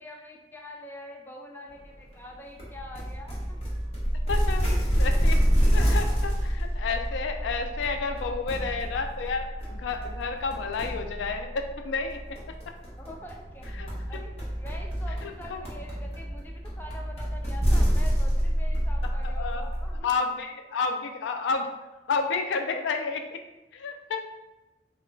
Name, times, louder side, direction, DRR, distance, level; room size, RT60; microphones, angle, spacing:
voice 1, 0.0-3.6 5.8-6.2 6.4-6.5 7.8-8.4 13.0-13.7 14.1-20.1, left 1 dB, 10° left, 1 dB, 0.3 m, -45 dB
sound 1, 2.6-20.0, equal, 35° left, 0.8 m, -28 dB
voice 2, 4.3-5.4 5.7-12.2 13.8-14.2 15.2-15.6 19.2-19.6 20.0-21.7 22.1-23.4 23.7-24.3, left 4 dB, 90° left, 6 dB, 0.3 m, -31 dB
2.2 x 2.1 x 3.7 m, 1.1 s
head